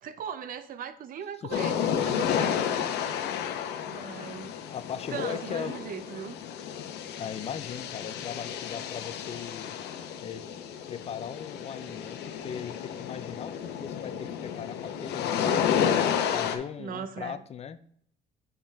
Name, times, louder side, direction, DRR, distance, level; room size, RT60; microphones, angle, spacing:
voice 1, 0.0-2.6 3.9-4.6 5.1-6.4 11.8-11.9 15.4-16.2 16.8-17.4, right 7 dB, 55° right, 12 dB, 0.7 m, -39 dB
sound 1, 1.5-16.6, left 8 dB, 85° left, 0.8 m, -31 dB
voice 2, 4.7-5.7 7.2-9.7 10.2-15.9 16.3-17.8, left 8 dB, 40° left, 13 dB, 0.5 m, -39 dB
7.0 x 5.4 x 3.5 m, 0.65 s
cardioid pair, 110°, 17 cm